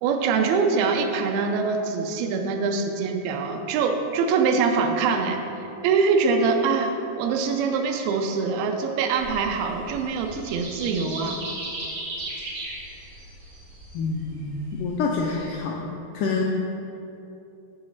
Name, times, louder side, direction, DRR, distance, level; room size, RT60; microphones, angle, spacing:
voice 1, 0.0-11.4, right 5 dB, 85° right, 4 dB, 2.5 m, -24 dB
sound 1, 9.2-15.5, right 1 dB, 55° right, 3.2 m, -37 dB
voice 2, 13.9-16.4, left 4 dB, 80° left, -1 dB, 1.9 m, -27 dB
8.5 x 3.9 x 7.1 m, 2.7 s
omnidirectional pair, 4.2 m